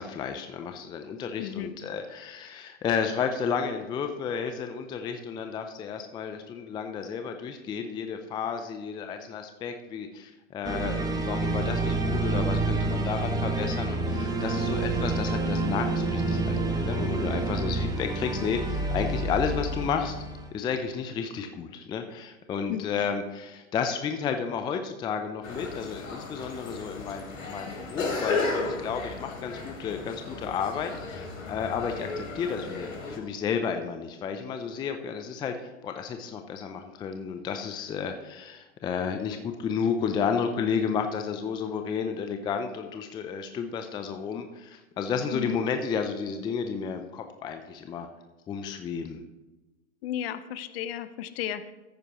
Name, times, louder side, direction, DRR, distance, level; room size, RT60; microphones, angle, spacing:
voice 1, 0.0-20.2 20.5-48.1 48.5-49.2, left 6 dB, 10° left, 7 dB, 0.4 m, -32 dB
voice 2, 1.4-1.7 22.7-22.8 45.3-45.6 50.0-51.7, left 11 dB, 45° left, 13 dB, 0.8 m, -33 dB
sound 1, 10.6-20.5, right 2 dB, 10° right, 1.3 m, -28 dB
sound 2, 25.4-33.2, left 3 dB, 75° left, 3.2 m, -34 dB
14.5 x 9.3 x 3.0 m, 1.1 s
hypercardioid pair, 115°, 41 cm